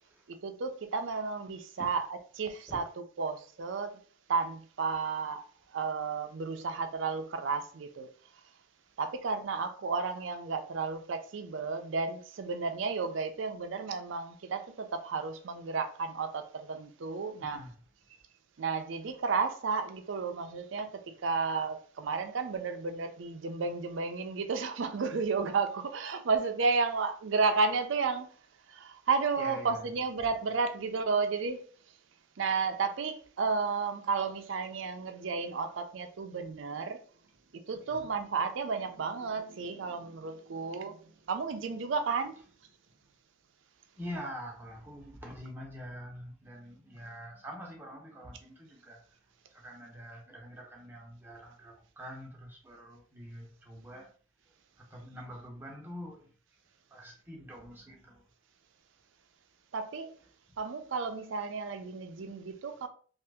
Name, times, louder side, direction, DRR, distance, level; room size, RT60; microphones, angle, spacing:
voice 1, 0.3-2.1 2.3-2.9 3.2-4.0 4.3-5.5 5.7-8.1 9.0-17.6 18.6-28.3 28.7-31.6 32.4-37.0 37.7-42.4 59.7-60.1 60.6-62.9, right 4 dB, 70° right, 0.4 m, -32 dB
voice 2, 17.4-17.8 29.4-30.3 37.7-38.1 44.0-49.2 49.5-54.1 54.8-56.3 56.9-58.2 60.5-60.6, equal, 10° right, 0.7 m, -45 dB
2.8 x 2.4 x 3.4 m
head